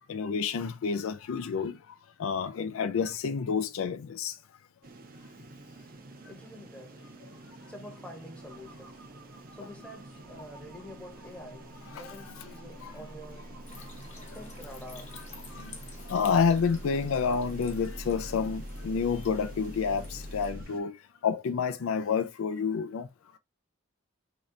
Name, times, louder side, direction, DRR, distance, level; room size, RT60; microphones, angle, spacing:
voice 1, 0.1-1.8 2.2-4.3 11.9-12.0 12.8-12.9 15.5-15.7 16.1-20.9 21.2-23.1, left 6 dB, 70° left, 0.4 m, -29 dB
sound 1, 4.8-20.8, right 2 dB, 40° right, 0.5 m, -50 dB
voice 2, 5.7-16.2, equal, 5° left, 0.8 m, -49 dB
sound 2, 8.4-20.6, equal, 60° right, 0.8 m, -45 dB
sound 3, 13.7-20.5, left 3 dB, 30° left, 1.0 m, -52 dB
3.1 x 2.8 x 3.7 m
head